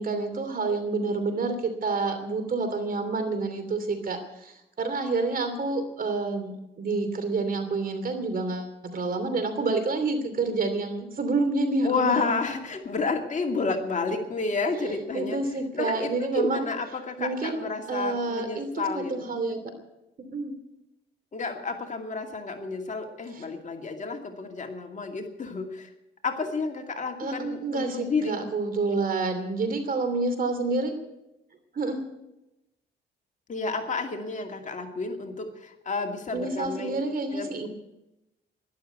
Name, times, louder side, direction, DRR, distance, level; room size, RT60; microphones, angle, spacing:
voice 1, 0.0-12.4 14.7-16.7 17.2-19.6 20.3-20.5 27.2-30.9 31.7-32.0 36.3-37.7, right 3 dB, 45° right, 8 dB, 2.9 m, -28 dB
voice 2, 11.8-15.4 15.7-19.3 21.3-25.9 26.2-28.3 33.5-37.0 37.3-37.7, left 4 dB, 40° left, 3 dB, 2.4 m, -31 dB
12.0 x 11.5 x 9.3 m, 0.93 s
cardioid pair, 90°, 20 cm